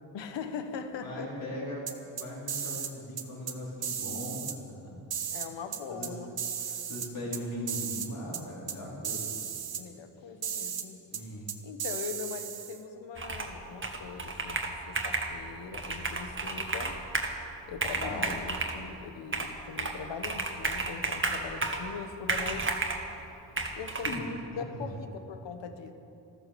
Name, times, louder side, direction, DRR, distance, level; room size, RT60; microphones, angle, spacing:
voice 1, 0.1-1.3 5.3-6.3 9.8-11.0 11.6-17.0 17.7-22.8 23.6-25.9, left 6 dB, 90° left, 7 dB, 1.3 m, -41 dB
voice 2, 1.0-1.9 2.1-4.6 4.8-4.9 5.9-6.2 6.6-9.3 11.1-11.5 17.9-18.2 24.0-24.2 24.5-24.9, left 1 dB, 50° left, -4 dB, 4.5 m, -39 dB
sound 1, 1.9-2.9 3.2-3.5 3.8-4.5 5.1-6.1 6.4-7.4 7.7-8.1 8.3-8.4 8.7-8.8 9.0-9.8 10.4-10.8 11.1-11.2 11.5-12.8, right 8 dB, 60° right, 1.2 m, -35 dB
Computer keyboard, 13.2-13.6 13.8-15.3 15.7-17.4 17.7-18.8 19.3-20.0 20.2-21.9 22.3-23.0 23.6-24.2, right 3 dB, 30° right, 1.7 m, -32 dB
13.5 x 13.5 x 6.9 m, 2.8 s
cardioid pair, 90°, 43 cm